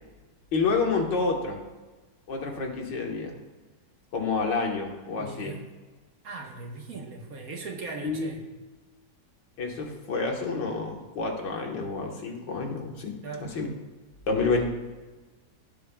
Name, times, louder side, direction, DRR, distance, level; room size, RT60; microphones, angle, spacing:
voice 1, 0.5-1.6 2.3-3.4 4.1-5.5 8.0-8.4 9.6-13.7 14.3-14.7, left 4 dB, 80° left, 1 dB, 2.0 m, -29 dB
voice 2, 5.2-5.6 6.2-8.4 13.2-13.5, right 3 dB, 55° right, 1 dB, 1.6 m, -38 dB
16.0 x 8.1 x 2.3 m, 1.2 s
omnidirectional pair, 1.9 m